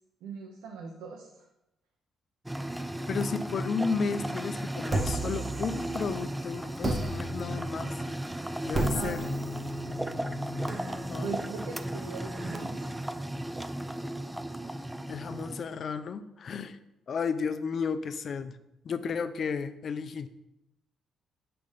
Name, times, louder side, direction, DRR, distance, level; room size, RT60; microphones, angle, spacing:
voice 1, 0.2-1.5 8.9-9.2 11.2-12.8, right 5 dB, 90° right, 1 dB, 0.8 m, -40 dB
sound 1, 2.5-15.6, right 1 dB, 10° right, 0.4 m, -35 dB
voice 2, 2.8-7.9 8.6-9.3 10.8-11.3 15.1-16.8 17.1-18.6 18.8-20.3, left 5 dB, 55° left, 11 dB, 0.5 m, -33 dB
sound 2, 4.9-6.3 6.8-12.6, right 1 dB, 25° right, 1.0 m, -35 dB
7.7 x 3.4 x 5.5 m, 0.88 s
cardioid pair, 90°, 0 cm